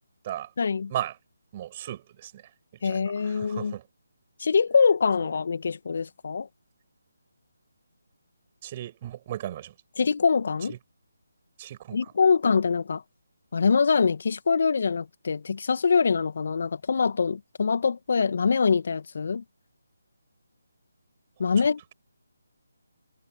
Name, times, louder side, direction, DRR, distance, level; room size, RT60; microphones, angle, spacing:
voice 1, 0.6-0.9 2.8-3.7 4.4-6.5 10.0-10.7 11.9-13.0 13.5-19.4 21.4-21.8, left 5 dB, 50° left, 1.8 m, -24 dB
voice 2, 1.5-3.9 5.2-5.3 8.6-9.7 10.7-10.8 11.6-12.1 21.4-21.7, right 12 dB, 30° right, 6.8 m, -37 dB
figure-of-eight pair, 150°, 0 cm